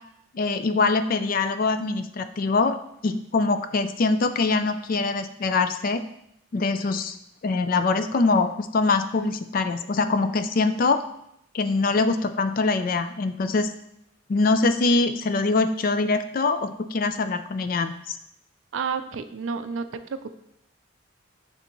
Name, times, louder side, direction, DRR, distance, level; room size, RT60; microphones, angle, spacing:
voice 1, 0.3-2.8 3.0-6.0 6.5-7.1 7.4-11.0 11.5-13.7 14.3-18.0, left 3 dB, 45° left, 10 dB, 0.4 m, -23 dB
voice 2, 18.7-19.9 20.2-20.4, right 5 dB, 75° right, 10 dB, 0.4 m, -30 dB
9.5 x 3.4 x 3.0 m, 0.78 s
head